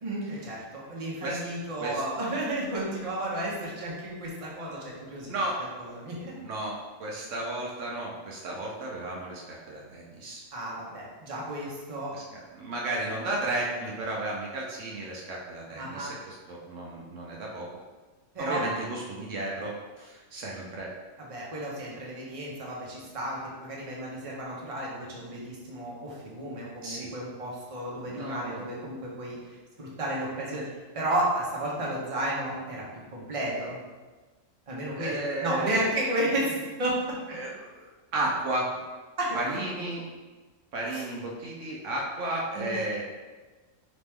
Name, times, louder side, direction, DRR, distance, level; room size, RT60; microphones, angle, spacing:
voice 1, 0.0-5.3 5.8-6.3 10.5-12.1 15.7-16.1 18.3-18.6 20.5-20.6 21.2-30.6 30.9-32.8 33.1-33.8 34.7-35.1 35.4-37.2 39.2-39.6 40.8-41.0 42.5-42.8, right 1 dB, 30° right, -5 dB, 0.9 m, -32 dB
voice 2, 5.3-5.6 6.4-10.4 12.1-17.7 18.4-20.9 26.8-27.1 28.0-28.6 34.9-35.9 37.3-38.8 39.3-40.0 40.7-43.1, right 2 dB, 70° right, -2 dB, 1.0 m, -33 dB
4.2 x 3.0 x 3.5 m, 1.3 s
omnidirectional pair, 1.4 m